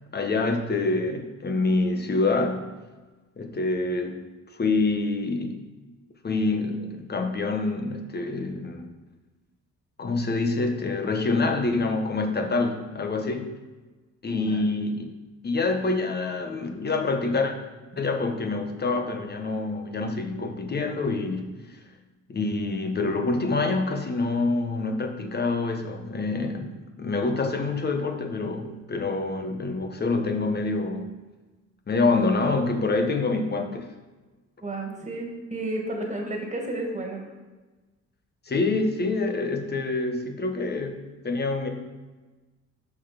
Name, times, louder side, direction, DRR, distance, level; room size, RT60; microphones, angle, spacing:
voice 1, 0.1-2.7 3.4-4.3 4.6-5.6 6.2-8.9 10.0-13.5 14.2-15.2 15.4-17.5 18.0-21.6 22.3-31.2 31.9-33.9 38.5-41.7, left 3 dB, 35° left, 5 dB, 1.3 m, -26 dB
voice 2, 14.3-14.6 16.5-16.8 17.9-18.0 34.6-37.2, right 2 dB, 25° right, 1 dB, 2.2 m, -32 dB
6.1 x 6.0 x 6.0 m, 1.2 s
cardioid pair, 90°, 30 cm